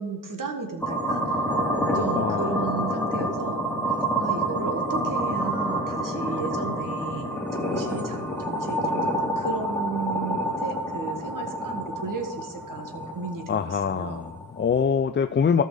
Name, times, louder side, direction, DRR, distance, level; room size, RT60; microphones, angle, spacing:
voice 1, 0.0-1.5 1.9-3.6 4.2-14.2, right 4 dB, 55° right, 3 dB, 1.8 m, -34 dB
sound 1, 0.8-14.8, right 1 dB, 5° left, 2.4 m, -28 dB
voice 2, 1.9-2.6 13.5-15.6, left 6 dB, 30° left, 9 dB, 0.4 m, -24 dB
13.5 x 5.6 x 4.9 m, 1.2 s
cardioid pair, 55°, 39 cm